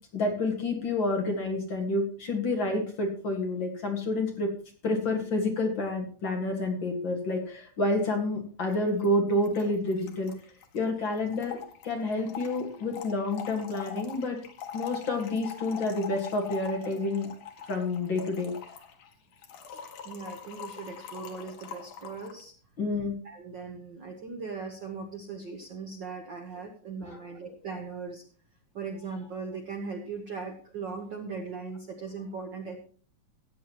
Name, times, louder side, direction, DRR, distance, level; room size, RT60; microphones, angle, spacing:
voice 1, 0.1-4.5 4.8-10.3 10.7-11.6 11.8-14.4 14.7-17.3 17.7-18.5 22.8-23.1 27.0-27.2 27.4-27.6, left 2 dB, 45° left, 2 dB, 2.3 m, -29 dB
Trickle dribble / Fill (with liquid), 8.7-8.8 9.0-9.1 9.3-22.4, left 8 dB, 85° left, 2.9 m, -43 dB
voice 2, 20.0-22.5 23.2-28.2 28.7-32.8, right 4 dB, 55° right, 4 dB, 1.2 m, -39 dB
16.5 x 9.2 x 3.0 m, 0.43 s
omnidirectional pair, 3.5 m